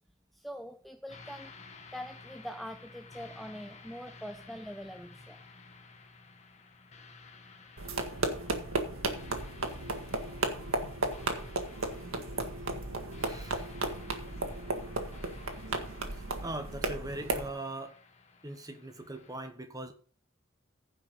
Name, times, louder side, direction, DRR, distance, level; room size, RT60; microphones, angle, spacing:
voice 1, 0.3-1.5 1.9-5.4, equal, ahead, 0.7 m, -43 dB
sound 1, 1.1-19.4, left 4 dB, 35° left, 1.5 m, -54 dB
sound 2, 7.8-17.5, right 2 dB, 80° right, 1.9 m, -34 dB
voice 2, 13.2-13.7 16.1-18.0 18.4-19.9, right 2 dB, 20° right, 1.2 m, -41 dB
15.5 x 5.7 x 5.3 m
head